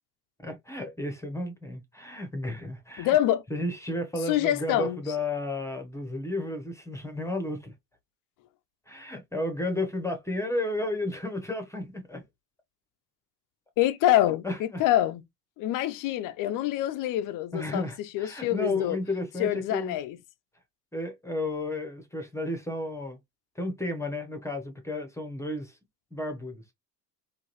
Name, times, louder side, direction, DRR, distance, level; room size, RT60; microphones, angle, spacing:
voice 1, 0.4-3.2 3.5-7.7 8.9-12.2 14.4-14.8 17.5-20.0 20.9-23.2 23.6-25.8 26.1-26.6, left 1 dB, 5° left, 0.9 m, -33 dB
voice 2, 3.0-3.4 4.3-5.0 13.8-15.2 15.6-19.0 19.4-20.2, left 13 dB, 45° left, 0.5 m, -26 dB
3.8 x 2.4 x 2.9 m
hypercardioid pair, 65°, 48 cm